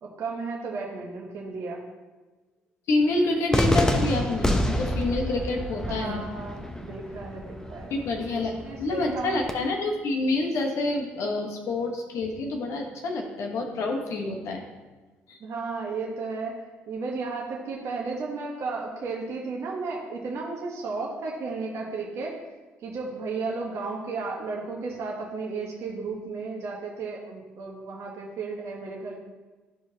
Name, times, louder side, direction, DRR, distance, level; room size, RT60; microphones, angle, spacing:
voice 1, 0.0-1.8 5.9-8.0 8.3-9.4 15.4-22.4 22.8-29.2, right 4 dB, 60° right, -3 dB, 1.3 m, -34 dB
voice 2, 2.9-6.2 7.9-8.5 8.8-14.6 15.3-15.4, left 2 dB, 60° left, 2 dB, 1.2 m, -27 dB
Cheering / Fireworks, 3.5-9.5, left 1 dB, 10° left, 1.0 m, -28 dB
13.0 x 4.7 x 2.8 m, 1.3 s
hypercardioid pair, 50°, 5 cm